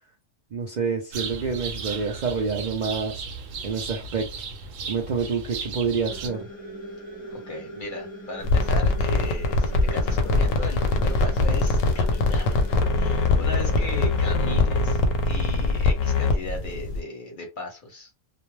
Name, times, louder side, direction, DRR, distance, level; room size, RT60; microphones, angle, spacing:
voice 1, 0.5-3.2 3.6-4.3 4.9-6.5, right 5 dB, 60° right, 0.4 m, -27 dB
sound 1, 1.1-6.3, right 5 dB, 80° right, 1.0 m, -35 dB
sound 2, 6.1-14.3, right 1 dB, 15° left, 0.4 m, -40 dB
voice 2, 7.2-12.7 12.9-18.1, left 2 dB, 50° left, 0.7 m, -37 dB
sound 3, 8.4-17.0, left 3 dB, 90° left, 1.0 m, -22 dB
2.4 x 2.0 x 3.0 m
omnidirectional pair, 1.3 m